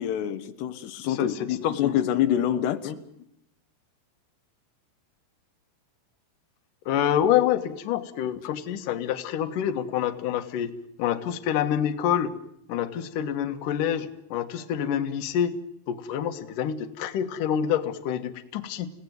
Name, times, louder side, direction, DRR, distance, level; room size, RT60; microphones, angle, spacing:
voice 1, 0.0-2.9, left 11 dB, 90° left, 9 dB, 3.4 m, -26 dB
voice 2, 1.0-2.0 2.8-3.0 6.9-10.7 11.0-12.3 12.7-15.6 15.9-18.9, left 9 dB, 60° left, 7 dB, 2.8 m, -27 dB
29.5 x 18.0 x 9.5 m, 0.77 s
omnidirectional pair, 4.7 m